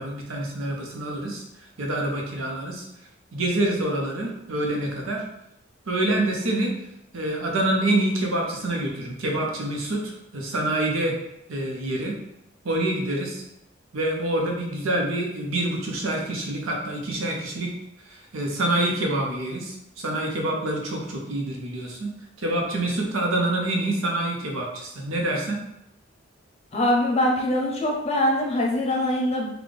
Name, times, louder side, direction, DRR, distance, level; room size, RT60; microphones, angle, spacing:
voice 1, 0.0-1.4 1.8-2.8 3.3-5.2 5.9-6.7 7.1-11.1 11.5-12.1 12.6-13.4 13.9-17.7 18.1-22.1 22.4-25.6, right 1 dB, 90° right, 0 dB, 0.8 m, -26 dB
voice 2, 26.7-29.5, left 1 dB, 30° left, -1 dB, 0.6 m, -23 dB
4.0 x 2.3 x 3.3 m, 0.80 s
head